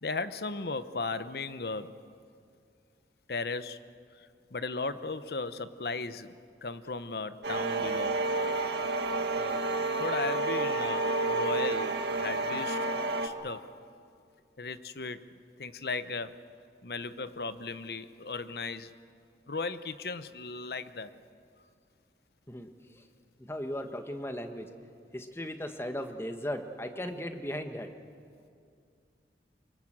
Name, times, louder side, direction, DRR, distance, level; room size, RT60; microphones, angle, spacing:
voice 1, 0.0-2.0 3.3-3.8 4.1-6.3 6.6-8.2 9.3-9.6 10.0-13.0 13.2-13.7 14.6-15.3 15.6-16.4 16.8-18.9 19.5-21.1, left 3 dB, 65° left, 13 dB, 0.9 m, -36 dB
sound 1, 7.4-13.3, right 2 dB, 75° right, 1.7 m, -30 dB
voice 2, 23.5-24.7 25.1-27.9, equal, 15° left, 7 dB, 1.3 m, -36 dB
24.5 x 24.0 x 7.5 m, 2.3 s
head